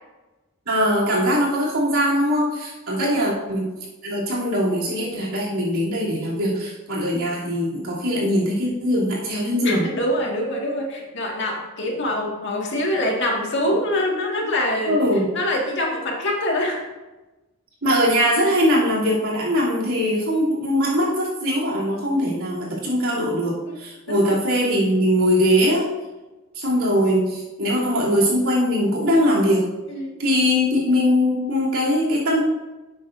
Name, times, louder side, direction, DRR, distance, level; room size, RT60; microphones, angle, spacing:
voice 1, 0.6-3.7 4.0-9.9 14.9-15.3 17.8-25.9 26.5-29.7 30.2-32.4, equal, 80° right, -6 dB, 3.0 m, -21 dB
voice 2, 3.0-3.3 9.6-15.0 15.3-16.8 23.7-23.8 24.1-24.3 29.9-30.2, left 1 dB, 55° left, -1 dB, 1.9 m, -24 dB
10.5 x 8.0 x 2.6 m, 1.1 s
head